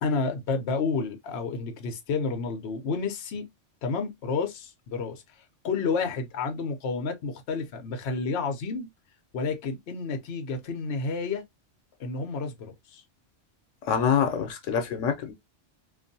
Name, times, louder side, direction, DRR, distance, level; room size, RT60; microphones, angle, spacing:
voice 1, 0.0-3.5 3.8-5.2 5.6-8.9 9.3-11.4 12.0-13.0, left 4 dB, 65° left, 0.9 m, -30 dB
voice 2, 13.9-15.3, left 7 dB, 85° left, 1.0 m, -25 dB
2.6 x 2.6 x 2.6 m
omnidirectional pair, 1.3 m